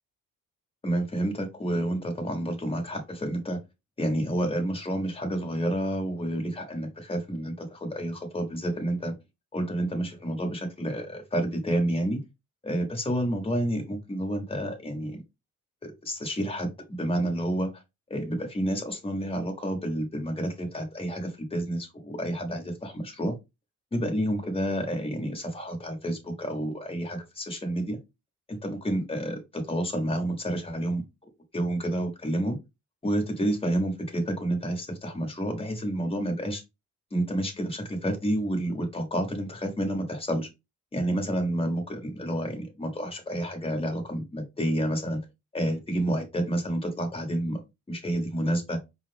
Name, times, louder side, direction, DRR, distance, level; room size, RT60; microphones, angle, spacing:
voice 1, 0.8-3.6 4.0-9.1 9.5-12.2 12.6-15.2 15.8-17.7 18.1-23.3 23.9-28.0 28.5-31.0 31.5-32.6 33.0-36.6 37.1-40.5 40.9-45.2 45.5-47.6 47.9-48.8, right 1 dB, 20° left, 1.6 m, -29 dB
4.9 x 2.4 x 3.5 m
cardioid pair, 90°, 30 cm